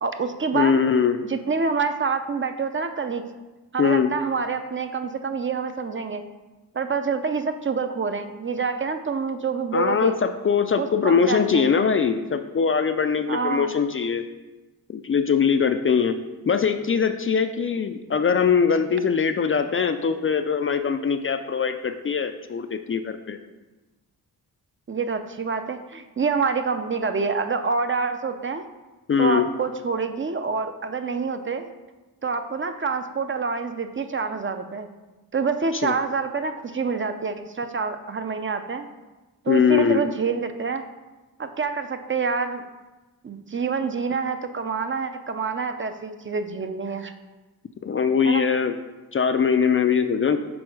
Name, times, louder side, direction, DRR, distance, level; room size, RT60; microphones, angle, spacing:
voice 1, 0.0-0.8 1.2-3.2 3.7-6.2 6.7-10.2 10.8-11.7 13.3-13.7 24.9-28.6 29.2-31.7 32.2-34.9 35.3-38.9 39.4-40.8 41.4-42.6 43.2-47.1 48.2-48.5, right 5 dB, 35° right, 8 dB, 0.5 m, -27 dB
voice 2, 0.5-1.2 3.8-4.1 9.7-14.2 14.9-16.2 16.5-23.4 29.1-29.5 35.8-35.9 39.5-40.1 47.8-48.7 49.1-50.4, left 6 dB, 35° left, 8 dB, 0.4 m, -22 dB
6.2 x 3.8 x 4.7 m, 1.1 s
cardioid pair, 75°, 38 cm